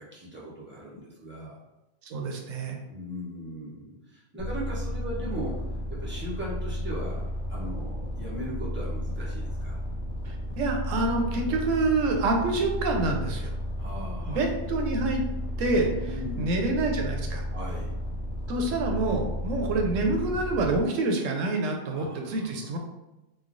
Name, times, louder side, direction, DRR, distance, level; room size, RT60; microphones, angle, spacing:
voice 1, 0.0-1.6 2.9-5.5 5.9-7.2 7.5-9.8 13.8-14.5 16.1-16.7 17.5-17.9 21.9-22.8, equal, 20° right, -6 dB, 0.3 m, -38 dB
voice 2, 2.0-2.8 10.2-13.5 14.3-15.2 15.6-17.4 18.5-22.8, right 2 dB, 80° right, 2 dB, 0.9 m, -27 dB
sound 1, 4.4-20.8, left 1 dB, 70° left, 0.9 m, -33 dB
3.1 x 2.2 x 2.4 m, 0.99 s
omnidirectional pair, 1.3 m